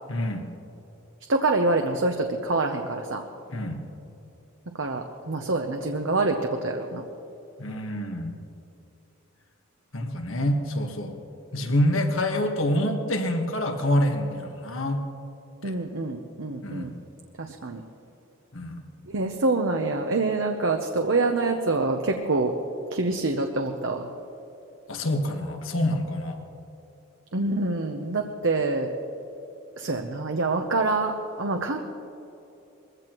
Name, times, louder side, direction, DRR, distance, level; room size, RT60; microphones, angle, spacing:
voice 1, 0.1-0.4 3.5-3.8 7.6-8.4 9.9-11.1 11.5-15.0 15.6-15.8 16.6-16.9 18.5-18.8 24.9-26.4, left 1 dB, 70° left, 4 dB, 1.5 m, -26 dB
voice 2, 1.3-3.2 4.8-7.0 15.6-16.9 17.4-17.8 19.1-22.5 22.9-24.1 27.3-28.9 29.8-31.1 31.4-31.8, right 3 dB, 60° right, 4 dB, 0.8 m, -26 dB
21.5 x 15.5 x 3.0 m, 2.8 s
head